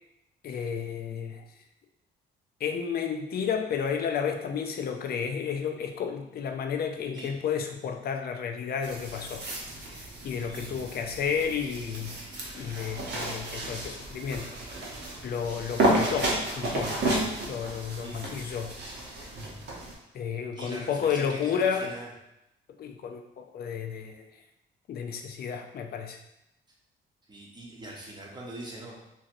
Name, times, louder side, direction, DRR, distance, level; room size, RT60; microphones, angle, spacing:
voice 1, 0.4-1.4 2.6-9.5 9.9-12.1 12.5-14.6 15.2-17.0 17.4-18.7 19.2-19.3 20.1-21.9 22.8-24.2 24.9-26.2, left 7 dB, 50° left, 4 dB, 0.4 m, -32 dB
sound 1, 8.8-19.9, right 1 dB, 60° right, 0.8 m, -32 dB
voice 2, 10.5-10.9 15.8-16.2 18.0-18.3 20.5-22.1 27.3-29.0, right 1 dB, 20° right, -3 dB, 0.8 m, -42 dB
3.0 x 2.6 x 2.5 m, 0.85 s
cardioid pair, 90°, 20 cm